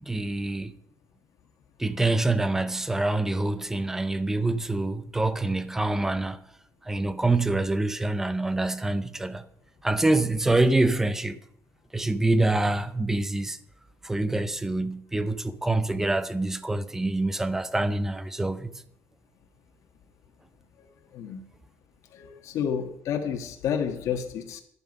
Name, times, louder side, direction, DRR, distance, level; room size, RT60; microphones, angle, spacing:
voice 1, 0.1-0.8 1.8-6.4 6.8-9.4 9.8-11.4 11.9-13.6 14.0-18.8, right 2 dB, 5° right, 0.6 m, -26 dB
voice 2, 22.1-24.6, left 8 dB, 65° left, 1.5 m, -30 dB
11.5 x 11.0 x 5.3 m
cardioid pair, 170°, 6 cm